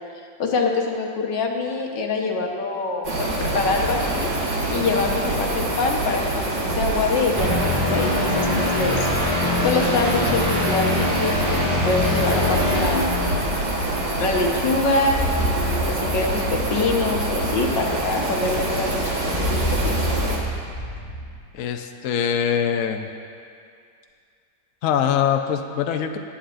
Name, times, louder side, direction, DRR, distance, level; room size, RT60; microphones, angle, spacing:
voice 1, 0.4-4.3 4.7-9.1 9.4-10.9 11.2-13.3 14.2-19.9, left 3 dB, 80° left, 1 dB, 1.8 m, -25 dB
sound 1, 3.0-20.4, right 2 dB, 75° right, 2.2 m, -26 dB
sound 2, 7.4-13.8, left 2 dB, 15° right, 2.7 m, -24 dB
sound 3, 13.7-21.4, equal, 40° left, 2.1 m, -30 dB
voice 2, 21.5-23.1 24.8-26.2, left 8 dB, 65° left, 6 dB, 0.8 m, -23 dB
20.0 x 10.0 x 2.6 m, 2.3 s
omnidirectional pair, 1.9 m